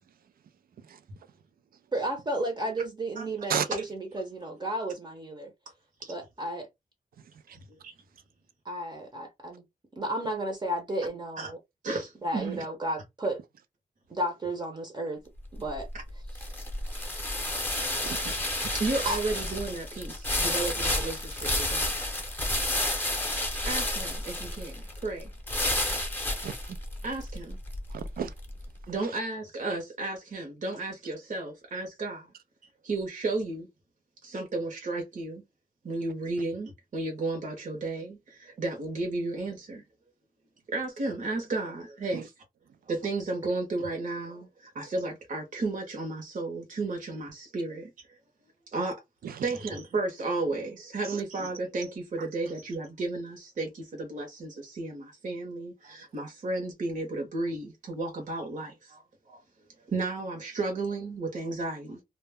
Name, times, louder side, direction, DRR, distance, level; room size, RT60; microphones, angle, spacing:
voice 1, 1.9-5.5 6.1-6.7 8.6-9.6 9.9-11.6 12.2-13.4 14.1-15.2 15.5-15.9 19.0-19.2, right 1 dB, 30° right, 0.6 m, -32 dB
voice 2, 7.5-7.9 11.4-11.5 11.8-12.6 18.7-22.0 23.6-25.3 27.0-27.6 28.9-32.3 32.8-33.7 34.2-35.4 35.8-39.8 40.7-42.3 42.9-48.2 48.7-49.0 49.4-59.0 59.3-59.4 59.9-62.0, right 2 dB, 60° right, 0.8 m, -33 dB
sound 1, 15.4-28.6, left 1 dB, 15° left, 0.7 m, -31 dB
voice 3, 17.9-18.5 26.4-26.8 27.9-28.3 42.1-42.2 49.2-49.4 51.0-51.2 52.2-52.3 55.8-55.9, right 7 dB, 85° right, 0.4 m, -34 dB
2.2 x 2.0 x 3.3 m
wide cardioid pair, 115°, 15 cm